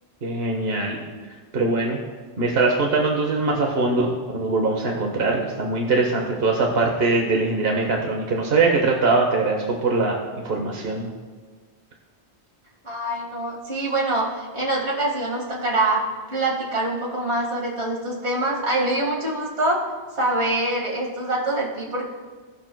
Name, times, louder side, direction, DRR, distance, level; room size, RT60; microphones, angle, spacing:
voice 1, 0.2-1.0 1.5-2.0 2.4-10.2 10.4-11.1, right 3 dB, 65° right, 0 dB, 1.2 m, -22 dB
voice 2, 12.8-19.8 20.2-22.0, right 2 dB, 85° right, -4 dB, 2.2 m, -25 dB
18.0 x 6.0 x 2.2 m, 1.5 s
omnidirectional pair, 1.1 m